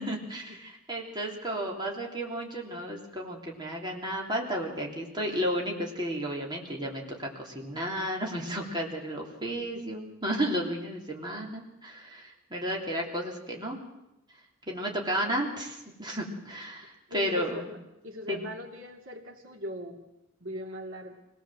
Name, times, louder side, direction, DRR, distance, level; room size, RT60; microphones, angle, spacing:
voice 1, 0.0-13.8 14.7-17.7 18.3-18.4, equal, 20° right, -1 dB, 3.3 m, -33 dB
voice 2, 17.1-20.0 20.4-21.2, left 1 dB, 90° right, 3 dB, 2.8 m, -40 dB
24.5 x 18.5 x 7.7 m, 0.92 s
head